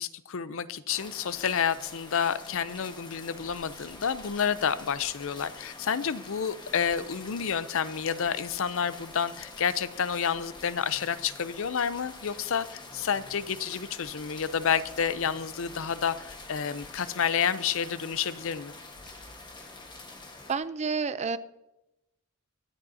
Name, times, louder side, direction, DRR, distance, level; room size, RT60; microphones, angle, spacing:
voice 1, 0.0-18.7, left 7 dB, 60° left, 14 dB, 0.5 m, -29 dB
sound 1, 0.9-20.5, left 2 dB, 20° left, 1.3 m, -46 dB
voice 2, 20.5-21.4, right 5 dB, 30° right, 13 dB, 0.5 m, -29 dB
24.5 x 8.2 x 2.7 m, 0.90 s
head